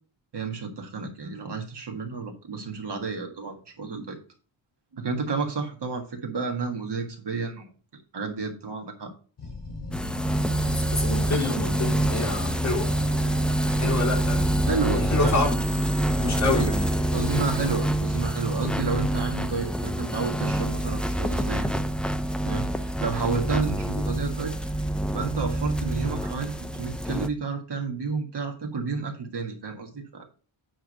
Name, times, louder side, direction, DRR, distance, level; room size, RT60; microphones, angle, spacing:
voice 1, 0.3-4.2 4.9-7.7 8.1-9.1 14.7-15.3 16.5-16.7 17.1-21.7 22.4-24.5 25.1-30.3, right 4 dB, 60° right, 4 dB, 1.8 m, -31 dB
Animal, 9.4-13.9 14.2-18.1, left 2 dB, 60° left, 4.6 m, -37 dB
sound 1, 9.9-27.3, right 1 dB, ahead, 0.4 m, -26 dB
voice 2, 10.6-12.9 13.6-15.6 16.2-16.9, left 3 dB, 35° left, -3 dB, 3.6 m, -28 dB
9.3 x 3.7 x 6.6 m, 0.38 s
wide cardioid pair, 165°, 46 cm